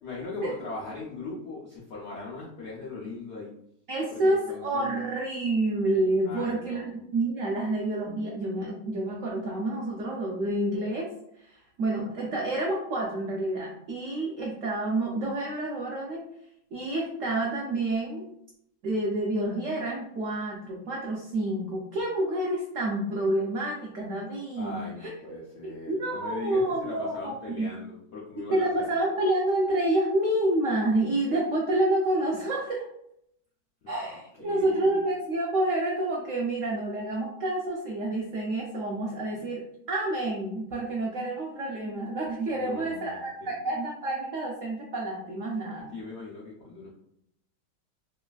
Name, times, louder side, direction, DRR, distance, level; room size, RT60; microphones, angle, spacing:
voice 1, 0.0-3.5 4.1-4.9 6.2-7.0 24.6-29.0 33.8-33.9 34.4-35.0 42.5-43.6 45.9-46.9, left 3 dB, 80° left, -5 dB, 0.6 m, -40 dB
voice 2, 3.9-11.1 11.4-16.2 16.7-18.3 18.8-25.4 25.6-27.7 28.5-32.9 33.9-39.6 39.9-45.9, right 1 dB, 80° right, -2 dB, 0.7 m, -28 dB
3.2 x 2.3 x 2.2 m, 0.73 s
omnidirectional pair, 1.9 m